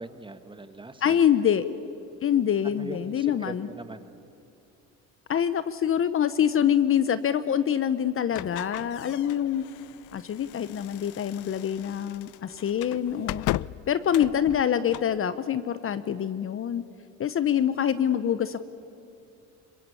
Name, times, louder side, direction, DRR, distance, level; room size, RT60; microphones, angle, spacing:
voice 1, 0.0-1.2 2.6-4.1, right 2 dB, 15° right, 10 dB, 1.5 m, -41 dB
voice 2, 1.0-1.7 2.2-3.7 5.3-9.6 10.1-13.5 13.9-16.8 17.2-18.6, left 9 dB, 40° left, 14 dB, 0.8 m, -25 dB
sound 1, 8.3-15.2, left 18 dB, 65° left, 0.5 m, -37 dB
23.5 x 21.0 x 8.5 m, 2.7 s
supercardioid pair, 90°, 33 cm